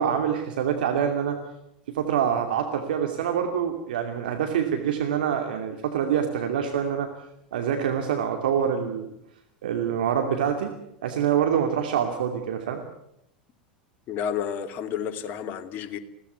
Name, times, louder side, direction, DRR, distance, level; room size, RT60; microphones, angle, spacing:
voice 1, 0.0-1.4 1.9-7.1 7.5-9.1 9.6-10.7 11.0-12.8, right 8 dB, 70° right, 4 dB, 2.6 m, -25 dB
voice 2, 14.1-16.0, left 8 dB, 45° left, 7 dB, 2.6 m, -31 dB
22.0 x 17.5 x 9.4 m, 0.79 s
hypercardioid pair, 85°, 5 cm